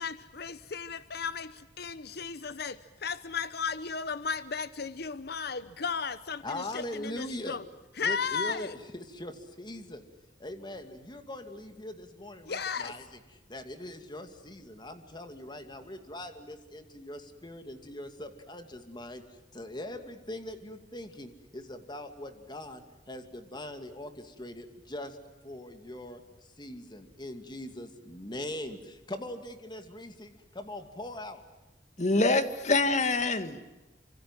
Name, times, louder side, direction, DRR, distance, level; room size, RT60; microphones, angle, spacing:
voice 1, 0.0-7.6 8.0-8.7 12.5-12.9, left 5 dB, 65° left, 14 dB, 0.9 m, -35 dB
voice 2, 6.4-7.6 8.0-10.0 10.4-13.2 13.5-25.2 25.4-26.2 26.6-31.4, left 1 dB, 25° left, 7 dB, 2.6 m, -41 dB
voice 3, 32.0-33.7, left 2 dB, 45° left, 10 dB, 2.0 m, -25 dB
27.5 x 26.0 x 7.6 m, 1.1 s
head